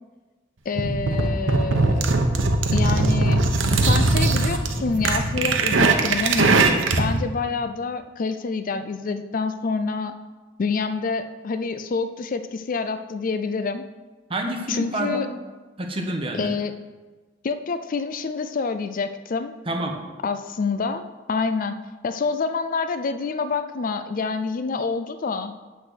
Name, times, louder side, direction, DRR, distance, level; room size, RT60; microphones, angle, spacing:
voice 1, 0.7-2.1 2.7-3.4 3.7-6.6 7.0-10.1 10.6-13.8 14.7-15.3 16.3-16.7 17.4-19.5 20.2-21.8 22.0-25.5, left 4 dB, 45° left, 10 dB, 0.4 m, -27 dB
sound 1, 0.8-7.2, right 3 dB, 85° right, 0.9 m, -20 dB
voice 2, 14.3-15.3 15.8-16.5 19.7-20.0, right 1 dB, 30° right, 2 dB, 1.2 m, -27 dB
8.1 x 6.0 x 6.3 m, 1.3 s
head